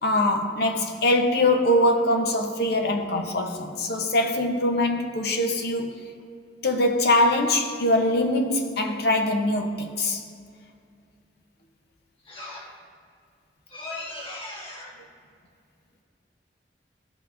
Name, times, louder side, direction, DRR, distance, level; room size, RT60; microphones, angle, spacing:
voice 1, 0.0-6.0 6.6-10.2, left 1 dB, 60° left, 0.7 m, -23 dB
voice 2, 12.3-12.7 13.7-14.9, left 2 dB, 30° left, 1.6 m, -37 dB
13.5 x 5.7 x 2.5 m
head